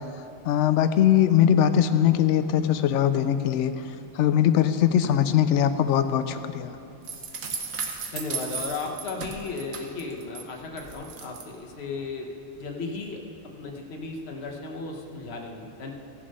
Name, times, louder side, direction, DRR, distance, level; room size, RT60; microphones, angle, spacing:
voice 1, 0.4-3.7 4.1-6.8, left 10 dB, 65° left, 11 dB, 0.8 m, -21 dB
sound 1, 7.0-10.4 10.8-11.4, right 5 dB, 75° right, 1.4 m, -35 dB
voice 2, 8.1-12.3 12.5-13.2 13.6-15.9, left 3 dB, 50° left, 1 dB, 1.2 m, -35 dB
15.0 x 6.9 x 5.3 m, 2.7 s
omnidirectional pair, 1.5 m